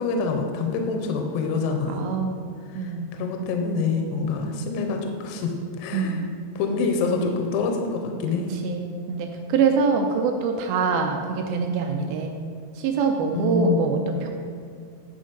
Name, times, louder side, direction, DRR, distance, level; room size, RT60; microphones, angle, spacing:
voice 1, 0.0-2.1 2.7-6.2 6.6-8.5 13.3-14.0, left 4 dB, 80° left, 3 dB, 2.7 m, -26 dB
voice 2, 1.9-2.5 2.7-3.2 5.9-6.4 8.6-12.3 12.8-14.3, right 4 dB, 85° right, 3 dB, 2.1 m, -24 dB
9.7 x 6.4 x 5.2 m, 2.3 s
omnidirectional pair, 5.1 m